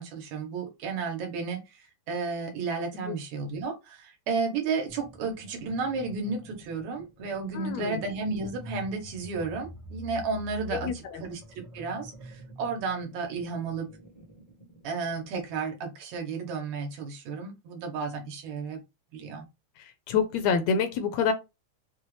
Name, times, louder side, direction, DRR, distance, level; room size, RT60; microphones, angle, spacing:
voice 1, 0.0-13.9 14.8-18.8 19.1-19.5, right 4 dB, 75° right, 2.3 m, -33 dB
sound 1, 4.9-15.4, left 1 dB, 55° left, 0.3 m, -46 dB
voice 2, 7.5-8.0 10.7-11.2 19.8-21.3, left 6 dB, 75° left, 1.8 m, -27 dB
5.6 x 2.4 x 3.1 m
omnidirectional pair, 3.4 m